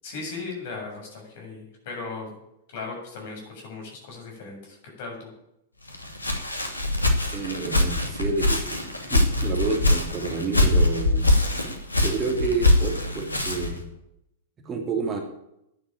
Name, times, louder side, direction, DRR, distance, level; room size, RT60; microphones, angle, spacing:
voice 1, 0.0-2.3 2.7-5.3, left 4 dB, 50° left, 1 dB, 7.3 m, -37 dB
Walk footsteps, 5.9-13.8, left 2 dB, 80° left, 2.5 m, -23 dB
voice 2, 7.3-11.3 12.0-13.8 14.6-15.2, right 4 dB, 25° right, 2 dB, 2.7 m, -29 dB
11.5 x 10.0 x 9.1 m, 0.81 s
figure-of-eight pair, 100°, 0 cm